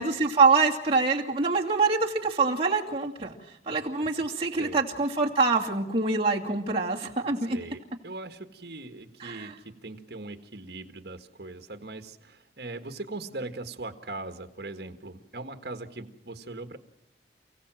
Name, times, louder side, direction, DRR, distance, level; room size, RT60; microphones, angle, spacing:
voice 1, 0.0-3.4 3.7-7.6 9.2-9.5, right 4 dB, 30° right, -2 dB, 2.5 m, -25 dB
voice 2, 7.5-16.8, right 2 dB, 60° right, 7 dB, 1.6 m, -40 dB
29.5 x 16.5 x 7.6 m, 0.84 s
head